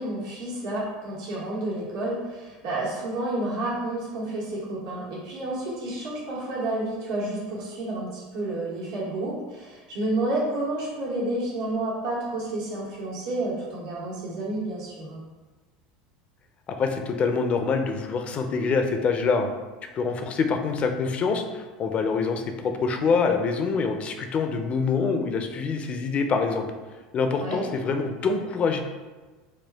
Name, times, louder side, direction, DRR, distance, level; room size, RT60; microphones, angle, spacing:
voice 1, 0.0-15.2 27.4-27.6, right 2 dB, 75° right, -6 dB, 1.4 m, -30 dB
voice 2, 16.8-19.5 19.9-26.7 27.1-28.8, left 4 dB, 35° left, 6 dB, 0.5 m, -25 dB
4.4 x 2.3 x 3.4 m, 1.3 s
supercardioid pair, 105°, 3 cm